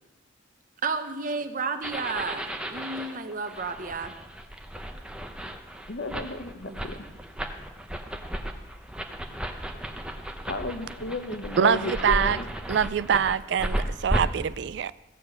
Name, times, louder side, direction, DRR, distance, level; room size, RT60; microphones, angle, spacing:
voice 1, 0.8-4.1 6.8-6.9, right 4 dB, 45° right, 8 dB, 1.0 m, -32 dB
sound 1, 1.8-14.2, right 1 dB, 5° right, 0.8 m, -34 dB
voice 2, 5.9-7.1 9.7-9.8 10.5-12.5, left 3 dB, 60° left, 8 dB, 1.0 m, -34 dB
voice 3, 11.6-12.4 12.7-14.9, right 7 dB, 60° right, 17 dB, 0.3 m, -24 dB
15.0 x 6.9 x 8.3 m, 1.1 s
head